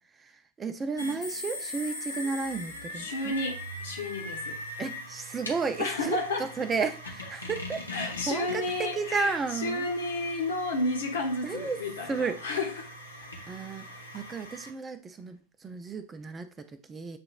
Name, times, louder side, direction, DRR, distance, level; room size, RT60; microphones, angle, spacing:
voice 1, 0.2-3.4 4.8-9.9 11.4-11.8 12.1-12.4 13.5-13.9 14.1-17.2, right 4 dB, 20° right, 0.4 m, -33 dB
sound 1, 1.0-14.7, left 1 dB, 80° left, 1.0 m, -41 dB
voice 2, 3.0-4.6 5.8-6.5 7.9-12.9, left 2 dB, 65° left, 1.2 m, -32 dB
7.5 x 2.9 x 2.4 m
figure-of-eight pair, 95°, 0 cm